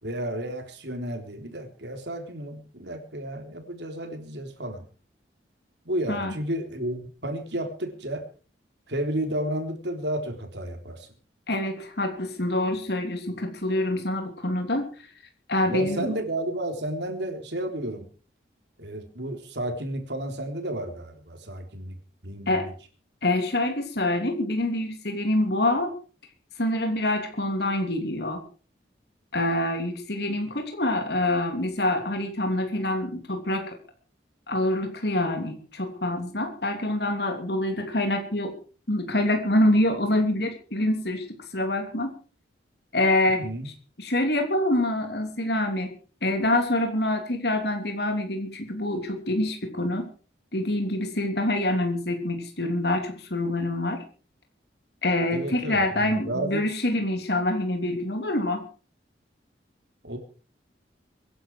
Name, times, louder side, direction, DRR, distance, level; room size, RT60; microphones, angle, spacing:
voice 1, 0.0-4.9 5.9-8.3 8.9-11.1 15.7-18.1 18.8-22.0 22.2-22.7 43.3-43.7 55.3-56.6 60.0-60.2, right 1 dB, 70° right, 6 dB, 3.6 m, -32 dB
voice 2, 11.5-14.9 15.5-16.1 22.5-22.7 23.2-25.9 26.6-28.4 29.3-33.8 34.5-38.5 38.9-41.2 41.5-42.1 42.9-43.7 44.0-45.9 46.2-50.1 50.5-54.0 55.0-58.6, left 1 dB, 60° left, 4 dB, 3.2 m, -26 dB
23.5 x 11.5 x 4.8 m, 0.39 s
head